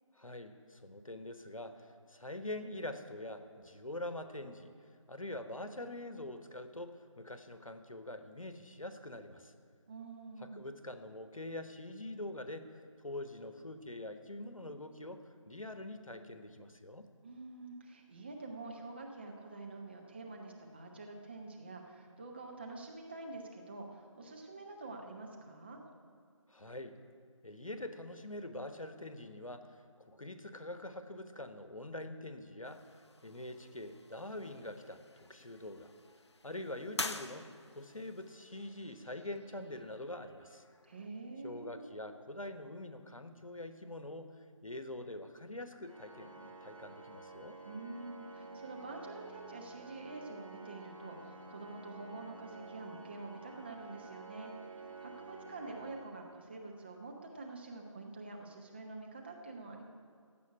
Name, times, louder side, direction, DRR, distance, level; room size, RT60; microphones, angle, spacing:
voice 1, 0.1-4.7 5.1-9.5 10.4-12.7 13.0-17.1 26.5-27.0 27.4-32.9 33.2-35.9 36.4-40.6 41.4-47.6, left 1 dB, 85° left, 9 dB, 1.3 m, -45 dB
voice 2, 9.9-10.7 17.2-25.8 40.8-41.9 47.6-59.8, right 3 dB, 20° right, 1 dB, 0.9 m, -47 dB
sound 1, 32.6-41.1, left 3 dB, 55° left, 0.7 m, -48 dB
Organ, 45.9-56.8, right 3 dB, 80° right, 2.0 m, -51 dB
16.0 x 5.6 x 9.9 m, 2.1 s
figure-of-eight pair, 160°, 17 cm